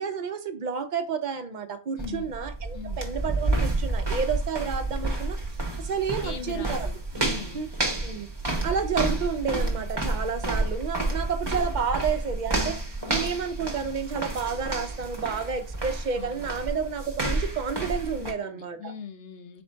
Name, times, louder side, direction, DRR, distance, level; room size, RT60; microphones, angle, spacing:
voice 1, 0.0-5.4 5.8-6.9 7.5-7.7 8.0-8.3 8.6-12.7 13.1-18.9, right 6 dB, 55° right, 0.6 m, -30 dB
voice 2, 2.0-2.3 2.7-3.2 6.2-7.7 13.0-13.4 16.1-16.6 18.2-19.6, left 6 dB, 65° left, 0.9 m, -41 dB
sound 1, 2.0-18.3, right 2 dB, 25° right, 0.8 m, -30 dB
4.3 x 2.6 x 4.3 m
omnidirectional pair, 1.1 m